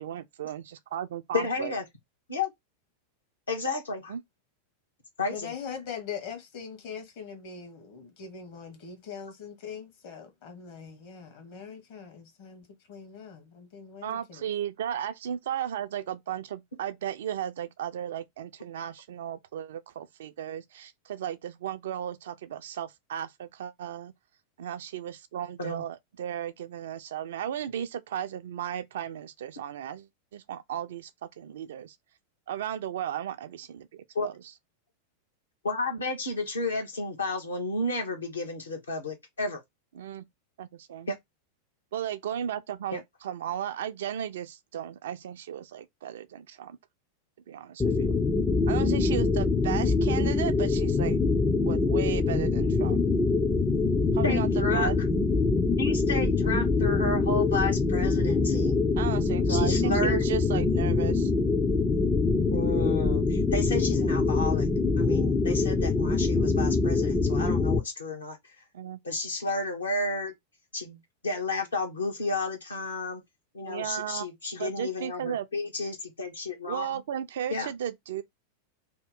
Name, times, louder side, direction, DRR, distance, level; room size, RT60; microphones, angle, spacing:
voice 1, 0.0-1.7 4.1-4.2 14.0-24.1 24.6-32.0 32.5-34.3 40.0-40.3 40.6-41.1 41.9-46.8 47.5-48.2 48.7-51.2 51.6-53.0 54.1-54.5 54.7-55.0 59.0-61.3 68.7-69.0 73.7-74.3 74.6-75.5 76.7-78.2, right 10 dB, 60° right, 0.3 m, -35 dB
voice 2, 1.3-1.8 2.3-2.5 3.5-4.1 5.2-5.5 25.6-25.8 34.1-34.3 35.6-39.6 41.1-41.2 42.9-43.0 54.2-54.9 55.8-58.8 59.5-60.2 62.5-64.7 65.0-68.6 69.0-70.3 70.7-73.2 73.5-77.0 77.5-77.7, left 2 dB, 70° left, 1.0 m, -32 dB
voice 3, 5.3-14.4, left 7 dB, 50° left, 1.1 m, -42 dB
sound 1, 47.8-67.8, left 3 dB, 15° left, 0.4 m, -24 dB
2.8 x 2.0 x 3.7 m
figure-of-eight pair, 90°, 0 cm